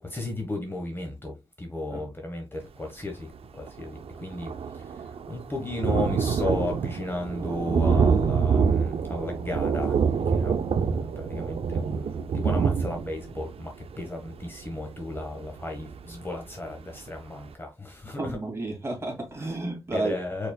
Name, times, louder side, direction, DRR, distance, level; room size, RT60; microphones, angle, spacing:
voice 1, 0.0-18.4 19.4-19.5 19.9-20.5, left 2 dB, 20° left, 1.1 m, -35 dB
Thunder, 3.3-3.4 3.7-16.3 16.8-16.9 17.2-17.3, right 6 dB, 70° right, 0.5 m, -26 dB
voice 2, 18.2-20.2, right 2 dB, 25° right, 2.1 m, -31 dB
4.7 x 4.4 x 2.2 m
wide cardioid pair, 100°, 10 cm